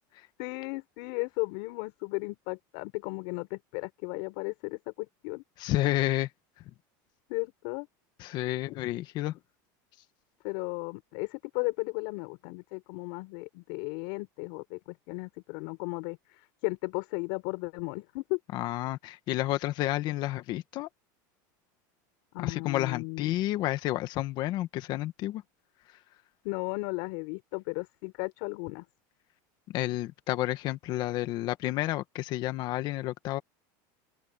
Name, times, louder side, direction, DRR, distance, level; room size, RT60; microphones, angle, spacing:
voice 1, 0.4-5.4 7.3-7.9 10.4-18.4 22.3-23.4 26.4-28.8, left 30 dB, 60° left, 6.8 m, -35 dB
voice 2, 5.6-6.3 8.2-9.4 18.5-20.9 22.4-25.4 29.7-33.4, left 16 dB, 45° left, 1.6 m, -30 dB
open air
supercardioid pair, 145°, 10 cm